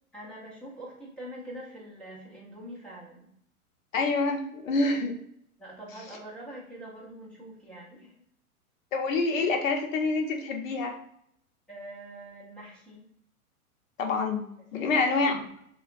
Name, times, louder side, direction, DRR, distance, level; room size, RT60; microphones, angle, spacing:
voice 1, 0.1-3.3 5.6-8.1 11.7-13.1 14.7-15.2, right 1 dB, 5° left, -6 dB, 0.4 m, -44 dB
voice 2, 3.9-5.2 8.9-11.0 14.0-14.4 14.7-15.4, left 3 dB, 60° left, 3 dB, 0.7 m, -26 dB
2.7 x 2.2 x 2.4 m, 0.71 s
hypercardioid pair, 115°, 44 cm